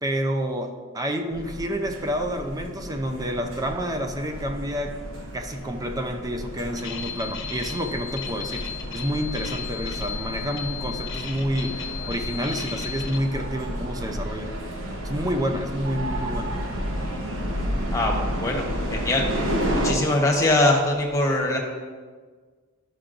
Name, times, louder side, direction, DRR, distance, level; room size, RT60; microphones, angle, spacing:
voice 1, 0.0-5.0 5.3-14.6 15.0-16.5, equal, 20° right, 5 dB, 0.5 m, -29 dB
sound 1, 1.3-19.9, equal, 65° right, 1.0 m, -31 dB
sound 2, 6.8-13.2, left 7 dB, 65° left, 1.0 m, -35 dB
voice 2, 17.9-18.6 18.9-19.3 19.8-21.6, left 2 dB, 15° left, -2 dB, 1.1 m, -22 dB
11.0 x 5.7 x 2.5 m, 1.5 s
head